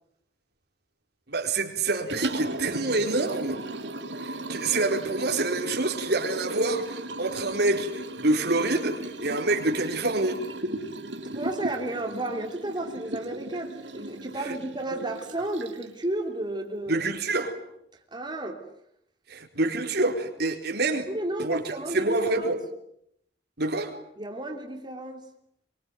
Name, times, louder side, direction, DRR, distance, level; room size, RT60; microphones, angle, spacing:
voice 1, 1.3-3.6 4.2-10.4 14.4-14.5 16.9-17.5 19.3-21.1 21.4-22.6 23.6-23.9, right 2 dB, 65° right, 4 dB, 4.5 m, -27 dB
Liquid, 1.9-16.0, right 1 dB, 80° right, 3.2 m, -37 dB
voice 2, 11.3-17.0 18.1-18.6 21.1-22.5 24.2-25.2, right 1 dB, 25° right, 2 dB, 3.4 m, -32 dB
24.5 x 24.5 x 9.5 m, 0.73 s
head